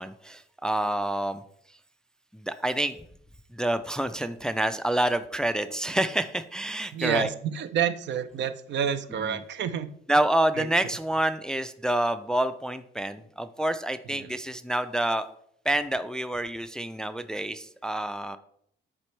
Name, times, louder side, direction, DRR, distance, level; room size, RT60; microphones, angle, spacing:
voice 1, 0.0-1.4 2.3-3.0 3.5-7.3 9.2-9.4 10.1-15.3 15.7-18.4, right 1 dB, 5° left, 11 dB, 0.3 m, -28 dB
voice 2, 6.9-9.9 10.6-10.7 14.1-14.3, right 8 dB, 65° right, 11 dB, 0.5 m, -29 dB
7.5 x 4.2 x 3.2 m, 0.68 s
cardioid pair, 90°, 20 cm